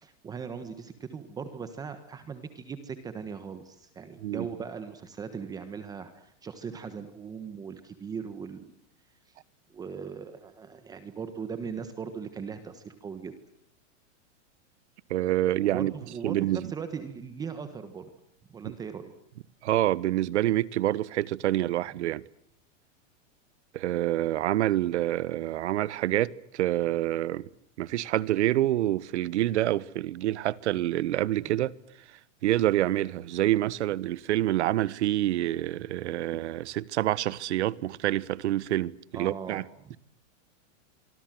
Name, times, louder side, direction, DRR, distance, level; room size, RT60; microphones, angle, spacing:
voice 1, 0.0-8.7 9.3-9.4 9.7-13.3 15.6-18.1 18.5-19.1 31.4-31.5 39.1-40.0, right 6 dB, 10° right, 1.3 m, -39 dB
voice 2, 15.1-15.9 16.2-16.7 19.6-22.2 23.7-27.5 27.8-31.7 32.4-39.6, right 14 dB, 65° right, 1.3 m, -27 dB
25.5 x 25.5 x 7.7 m
supercardioid pair, 180°, 38 cm